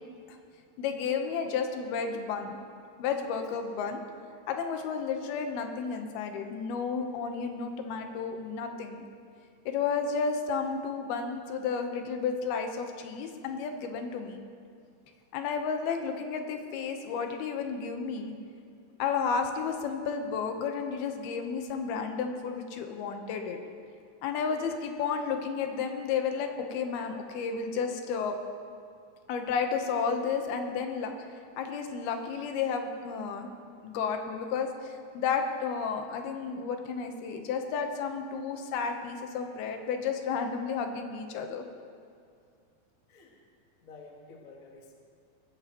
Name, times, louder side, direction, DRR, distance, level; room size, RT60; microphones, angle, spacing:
voice 1, 0.8-2.6 3.0-4.0 4.5-9.0 9.7-14.4 15.3-18.3 19.0-23.6 24.2-28.4 29.3-31.1 31.6-33.5 33.8-41.7, left 5 dB, 80° left, 5 dB, 2.9 m, -32 dB
voice 2, 43.1-43.4 43.8-44.9, left 3 dB, 50° left, -1 dB, 1.0 m, -51 dB
21.0 x 14.5 x 3.0 m, 2.3 s
omnidirectional pair, 4.4 m